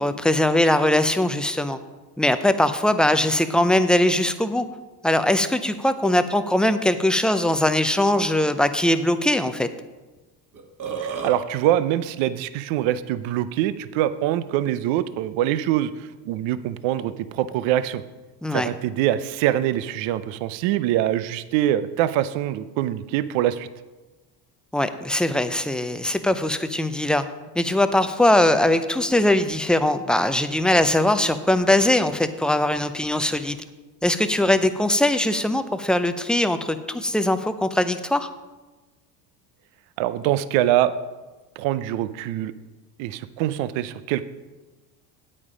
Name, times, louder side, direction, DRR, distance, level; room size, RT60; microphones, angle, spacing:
voice 1, 0.0-1.8 2.2-4.7 5.0-9.7 18.4-18.7 24.7-27.3 27.6-33.6 34.0-38.3, left 1 dB, ahead, 10 dB, 0.4 m, -21 dB
Burping eructation, 10.2-10.3 10.5-11.3, right 5 dB, 40° right, 2.0 m, -30 dB
voice 2, 11.0-18.0 18.5-23.7 40.0-40.9 41.6-42.5 43.0-44.2, right 12 dB, 65° right, 14 dB, 0.7 m, -24 dB
8.7 x 8.7 x 5.0 m, 1.2 s
supercardioid pair, 90°, 49 cm